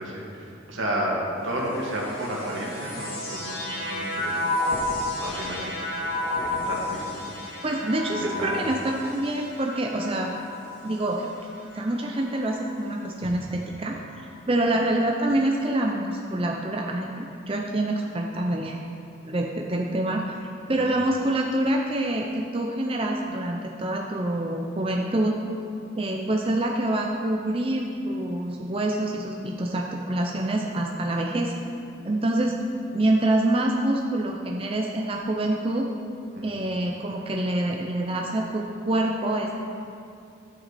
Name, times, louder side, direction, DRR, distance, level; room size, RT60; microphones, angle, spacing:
voice 1, 0.0-4.4 5.2-7.3 8.1-8.5 13.2-13.3 14.7-14.9 20.7-20.9 36.3-36.5, right 1 dB, 80° right, -3 dB, 2.2 m, -32 dB
sound 1, 1.5-13.0 13.8-14.5, left 2 dB, 50° left, 2.4 m, -32 dB
voice 2, 7.6-10.3 10.8-11.3 11.7-14.0 14.5-18.8 19.2-20.4 20.7-25.3 26.0-31.5 32.1-32.6 32.9-35.9 36.4-39.5, right 1 dB, 30° right, 0 dB, 0.6 m, -26 dB
11.0 x 9.1 x 4.2 m, 2.5 s
head